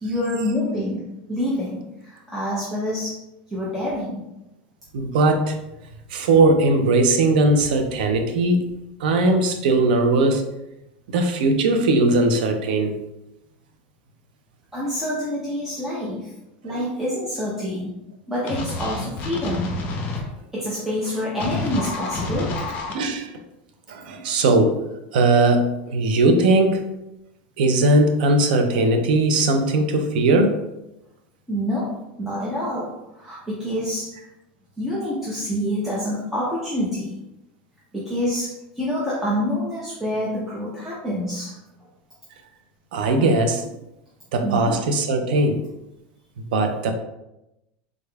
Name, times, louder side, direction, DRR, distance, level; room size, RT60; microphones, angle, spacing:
voice 1, 0.0-3.2 3.5-4.3 14.7-16.3 16.6-17.9 18.3-19.7 20.1-20.3 20.5-22.6 31.5-34.1 34.8-37.2 37.9-41.6 44.4-44.8, left 1 dB, 5° right, -8 dB, 0.7 m, -27 dB
voice 2, 4.9-5.6 6.1-8.7 9.0-10.5 11.1-13.0 16.6-16.8 22.9-23.3 23.9-24.8 25.1-26.9 27.6-30.6 42.9-43.7 44.3-45.6 46.5-46.9, right 2 dB, 80° right, 6 dB, 0.5 m, -19 dB
sound 1, 18.5-20.2 21.4-22.9, left 2 dB, 40° left, 0.6 m, -29 dB
3.6 x 3.3 x 2.3 m, 0.92 s
supercardioid pair, 145°, 5 cm